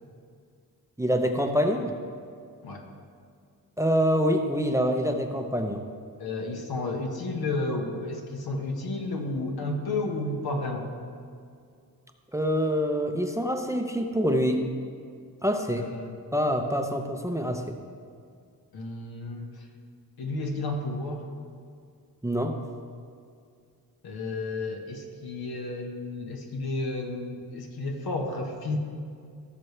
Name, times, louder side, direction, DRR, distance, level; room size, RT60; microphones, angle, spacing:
voice 1, 1.0-1.9 3.8-5.8 12.3-14.6 15.4-15.9 16.3-17.8 22.2-22.6, equal, 10° right, 4 dB, 0.6 m, -25 dB
voice 2, 6.2-10.9 15.8-16.1 18.7-19.7 20.2-21.3 24.0-28.8, left 2 dB, 75° left, 2 dB, 1.5 m, -32 dB
16.5 x 6.7 x 3.3 m, 2.3 s
cardioid pair, 100°, 37 cm